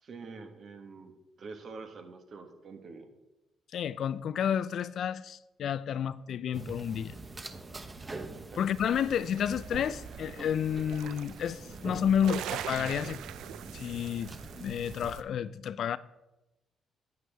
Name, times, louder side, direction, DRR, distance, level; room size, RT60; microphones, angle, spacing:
voice 1, 0.0-1.1 1.4-3.1 8.5-8.6, right 4 dB, 55° right, 1.4 m, -46 dB
voice 2, 3.7-7.1 8.6-13.2 13.7-14.3 14.6-16.0, left 8 dB, 65° left, 0.4 m, -31 dB
sound 1, 6.5-15.2, right 3 dB, 25° right, 0.8 m, -45 dB
sound 2, 8.8-15.2, right 11 dB, 85° right, 0.4 m, -43 dB
9.3 x 8.3 x 3.4 m
cardioid pair, 90°, 0 cm